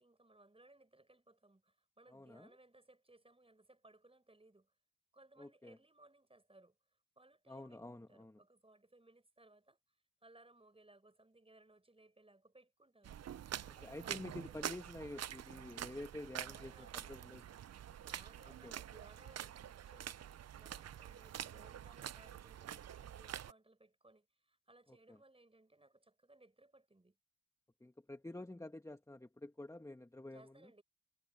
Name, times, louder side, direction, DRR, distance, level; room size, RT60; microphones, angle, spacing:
voice 1, 0.0-4.7 5.1-6.8 7.2-9.8 10.2-13.2 13.6-14.7 16.3-17.1 18.0-27.2 30.3-30.8, right 2 dB, 20° right, 6.3 m, -65 dB
voice 2, 2.1-2.5 5.4-5.8 7.5-8.4 13.8-17.4 18.6-18.7 25.1-25.2 27.8-30.7, left 1 dB, 10° left, 1.7 m, -49 dB
sound 1, 13.0-23.5, right 10 dB, 55° right, 0.7 m, -47 dB
supercardioid pair, 55°, 32 cm